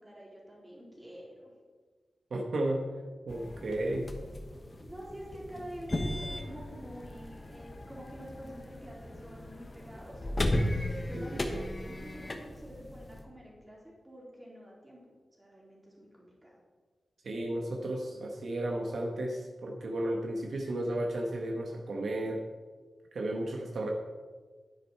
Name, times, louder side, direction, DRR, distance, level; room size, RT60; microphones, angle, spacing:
voice 1, 0.0-1.5 4.8-10.2 10.7-13.8 14.0-15.1 15.4-16.6, equal, 15° right, -4 dB, 3.5 m, -47 dB
voice 2, 2.3-2.8 3.3-4.1 11.1-11.6 17.2-22.4 23.1-23.9, right 1 dB, 70° right, 1 dB, 1.2 m, -33 dB
sound 1, 3.3-13.2, left 1 dB, 25° left, 1.1 m, -36 dB
10.5 x 10.0 x 4.5 m, 1.4 s
wide cardioid pair, 140°, 0 cm